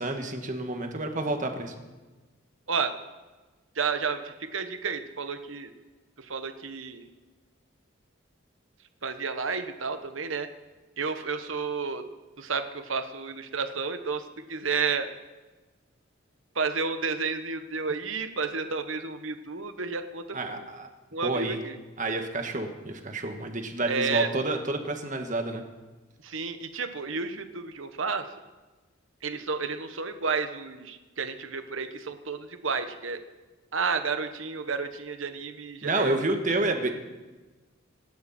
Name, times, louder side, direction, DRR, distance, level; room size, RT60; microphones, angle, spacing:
voice 1, 0.0-1.7 20.3-20.9 21.2-21.6 22.0-25.6 35.8-36.9, right 2 dB, 40° right, 5 dB, 1.8 m, -29 dB
voice 2, 3.7-5.7 6.2-7.1 9.0-10.5 11.0-12.0 12.4-15.1 16.5-20.7 21.1-21.8 23.9-24.3 26.2-28.3 29.2-33.2 33.7-36.2, right 5 dB, 75° right, 9 dB, 1.2 m, -31 dB
26.5 x 12.0 x 4.4 m, 1.2 s
head